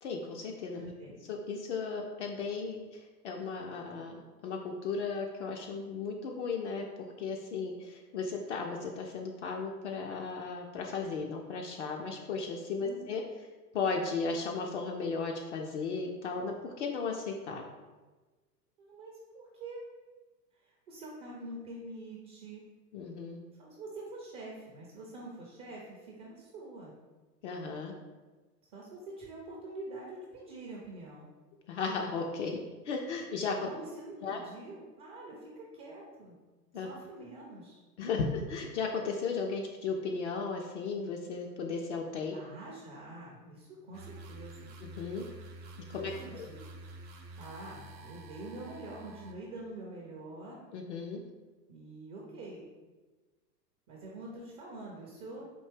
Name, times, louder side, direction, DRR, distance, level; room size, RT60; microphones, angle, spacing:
voice 1, 0.0-0.9 1.3-6.8 7.2-13.2 13.7-17.7 22.9-23.4 27.4-27.9 31.7-32.6 32.8-33.7 34.2-34.4 36.7-36.9 38.0-42.4 44.8-45.3 45.9-46.5 50.7-51.2, left 4 dB, 45° left, 1 dB, 0.5 m, -35 dB
voice 2, 0.8-1.1 12.8-13.1 18.8-19.8 20.6-22.6 23.6-26.9 28.7-31.3 33.6-36.4 36.7-37.8 42.3-44.7 45.9-46.6 47.4-50.6 51.7-52.7 53.9-55.4, right 2 dB, 25° right, -3 dB, 0.4 m, -46 dB
sound 1, 43.9-49.3, right 2 dB, 85° right, 0.6 m, -48 dB
4.3 x 2.7 x 3.3 m, 1.3 s
figure-of-eight pair, 95°, 49 cm